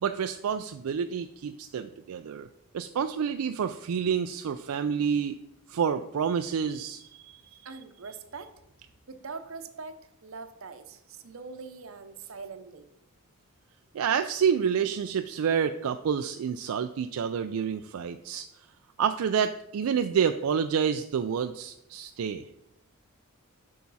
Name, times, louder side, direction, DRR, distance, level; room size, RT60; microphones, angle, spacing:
voice 1, 0.0-2.5 2.7-5.3 5.7-7.6 13.9-18.4 19.0-22.4, right 7 dB, 85° right, 8 dB, 0.4 m, -28 dB
voice 2, 7.6-8.6 9.1-12.9, right 4 dB, 65° right, 9 dB, 0.8 m, -43 dB
8.5 x 5.8 x 4.1 m, 0.81 s
head